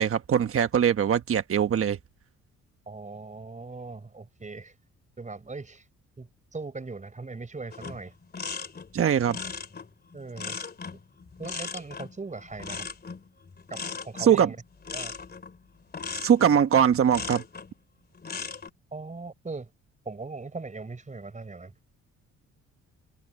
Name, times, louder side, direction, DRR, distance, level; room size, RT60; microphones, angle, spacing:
voice 1, 0.0-2.0 8.9-9.4 14.2-14.5 16.1-17.4, right 8 dB, 45° right, 1.2 m, -22 dB
voice 2, 2.9-4.7 5.2-5.8 6.2-8.1 10.1-10.6 11.4-12.9 13.7-14.6 14.9-15.1 18.9-19.7 20.0-21.7, right 3 dB, 25° right, 6.1 m, -39 dB
sound 1, 7.7-17.7 18.1-18.7, left 4 dB, 30° left, 2.9 m, -38 dB
cardioid pair, 90°, 30 cm